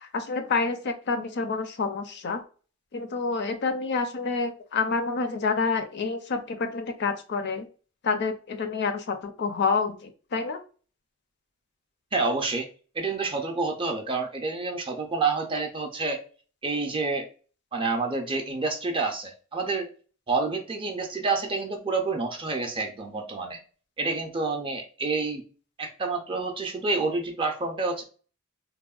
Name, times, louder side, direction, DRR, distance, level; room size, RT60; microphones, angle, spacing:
voice 1, 0.1-2.4 2.9-7.7 8.0-10.6, left 4 dB, 55° left, 8 dB, 0.4 m, -28 dB
voice 2, 12.1-12.7 13.0-16.2 16.6-17.3 17.7-19.9 20.3-23.6 24.0-25.4 25.8-28.0, right 3 dB, 25° right, 2 dB, 0.4 m, -28 dB
3.4 x 2.1 x 2.3 m, 0.38 s
head